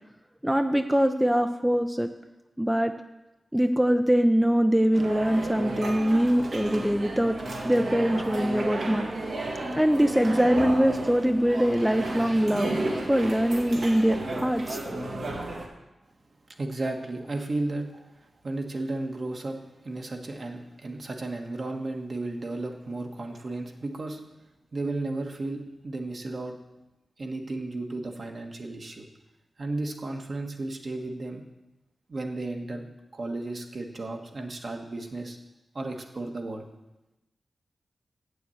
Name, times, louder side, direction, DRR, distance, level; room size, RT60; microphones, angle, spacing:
voice 1, 0.4-2.1 2.6-2.9 3.5-7.4 7.6-9.1 9.7-12.7 13.1-14.8, equal, 5° right, 7 dB, 0.5 m, -23 dB
sound 1, 4.9-15.7, right 2 dB, 75° right, 1.9 m, -33 dB
voice 2, 16.6-19.6 19.8-24.2 24.7-26.5 27.2-29.0 29.6-31.4 32.1-32.9 33.1-35.4 35.7-36.7, right 2 dB, 55° right, 3 dB, 1.4 m, -34 dB
8.4 x 7.1 x 7.7 m, 0.98 s
cardioid pair, 65°, 0 cm